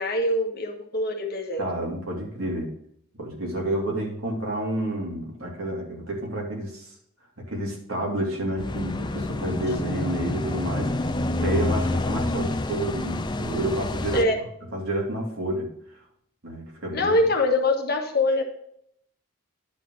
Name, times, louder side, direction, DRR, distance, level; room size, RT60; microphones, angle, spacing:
voice 1, 0.0-1.6 14.1-14.3 16.9-18.4, left 2 dB, 45° left, 3 dB, 1.4 m, -23 dB
voice 2, 1.6-2.7 3.2-6.9 7.4-10.9 11.4-14.3 14.7-15.7 16.4-17.1, right 1 dB, 75° right, -2 dB, 3.0 m, -29 dB
sound 1, 8.6-14.2, left 2 dB, 20° left, 0.4 m, -28 dB
10.5 x 4.0 x 6.3 m, 0.71 s
head